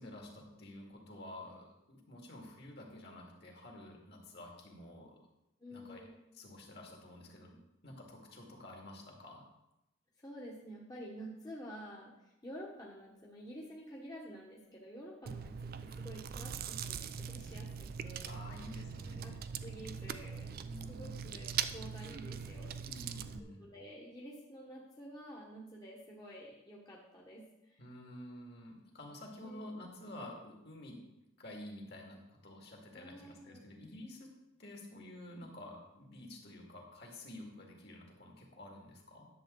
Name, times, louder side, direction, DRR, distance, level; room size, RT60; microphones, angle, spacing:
voice 1, 0.0-5.2 5.7-6.0 6.3-9.5 18.3-19.5 20.6-21.2 22.8-23.7 27.8-31.0 31.4-34.3 34.6-39.3, left 1 dB, 55° left, 0 dB, 2.1 m, -50 dB
voice 2, 5.6-6.2 10.2-18.7 19.2-20.6 20.9-22.8 23.4-27.8 29.4-29.7 32.9-33.6, equal, 20° left, -4 dB, 1.1 m, -50 dB
Chewing mastication, 15.2-23.4, right 7 dB, 50° right, 0.4 m, -41 dB
10.5 x 7.3 x 3.9 m, 0.91 s
head